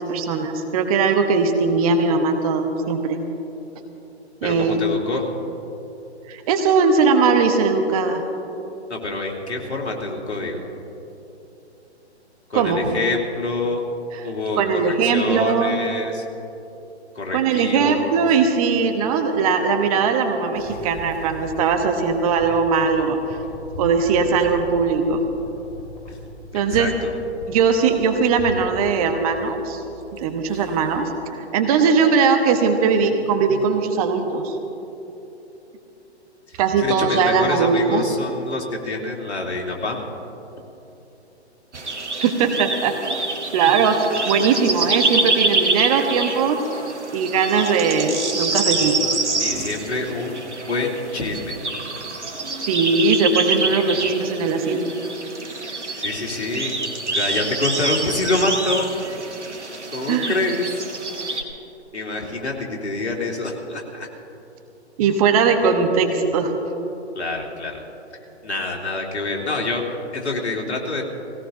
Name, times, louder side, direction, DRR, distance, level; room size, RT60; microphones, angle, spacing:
voice 1, 0.0-3.2 4.4-4.8 6.3-8.2 12.5-12.8 14.2-14.3 14.6-15.8 17.3-23.2 23.8-25.2 26.5-26.9 27.5-29.8 30.1-34.6 36.6-38.0 42.1-42.9 43.5-44.0 44.2-46.6 47.1-49.2 52.7-54.9 60.1-60.3 65.0-66.5, right 5 dB, 30° right, 5 dB, 1.2 m, -20 dB
voice 2, 4.4-5.2 8.9-10.7 12.5-13.8 14.2-16.2 17.1-18.2 26.1-26.2 26.7-27.1 36.5-40.1 49.4-51.6 56.0-56.7 57.1-58.9 59.9-60.8 61.9-64.1 67.1-67.8 68.4-69.9 70.1-71.0, left 2 dB, 70° left, 0 dB, 2.8 m, -26 dB
sound 1, 20.6-31.1, left 1 dB, 45° left, 3.2 m, -39 dB
sound 2, 41.7-61.4, right 3 dB, 85° right, 1.8 m, -26 dB
19.0 x 17.0 x 3.8 m, 3.0 s
figure-of-eight pair, 130°, 34 cm